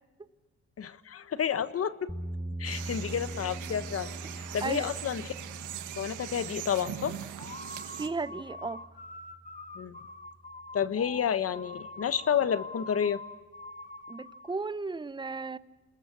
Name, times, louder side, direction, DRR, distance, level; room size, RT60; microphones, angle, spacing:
voice 1, 0.8-2.1 2.6-5.3 6.0-7.2 9.7-10.0 10.7-13.2, left 8 dB, 50° left, 13 dB, 1.2 m, -30 dB
sound 1, 2.1-10.2, right 1 dB, ahead, 1.7 m, -42 dB
sound 2, 2.6-8.1, right 10 dB, 80° right, 1.8 m, -41 dB
voice 2, 4.6-4.9 8.0-8.8 14.1-15.6, right 4 dB, 15° right, 16 dB, 0.8 m, -34 dB
sound 3, 7.4-14.6, left 2 dB, 25° left, 1.5 m, -45 dB
27.0 x 20.5 x 6.2 m, 1.2 s
cardioid pair, 90°, 30 cm